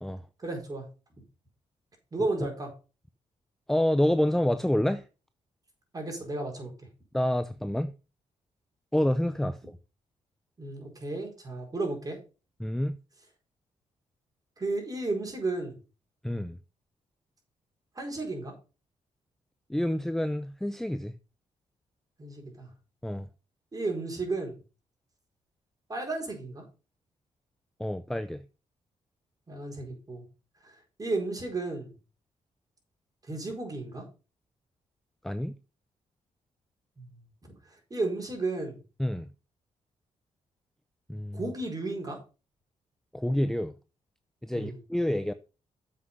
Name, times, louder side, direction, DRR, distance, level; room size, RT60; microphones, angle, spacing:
voice 1, 0.4-0.8 2.1-2.7 5.9-6.7 10.6-12.2 14.6-15.8 17.9-18.5 22.2-22.7 23.7-24.6 25.9-26.6 29.5-30.2 30.6-31.9 33.2-34.0 37.0-37.2 37.5-37.6 37.9-38.8 41.3-42.2 44.5-44.8, right 2 dB, 30° right, 4.6 m, -33 dB
voice 2, 3.7-5.0 7.1-7.9 8.9-9.8 12.6-13.0 16.2-16.6 19.7-21.1 23.0-23.3 27.8-28.4 35.2-35.5 39.0-39.3 41.1-41.4 43.1-43.7 44.4-45.3, left 1 dB, 5° left, 0.5 m, -28 dB
7.5 x 6.2 x 5.4 m
cardioid pair, 80°, 13 cm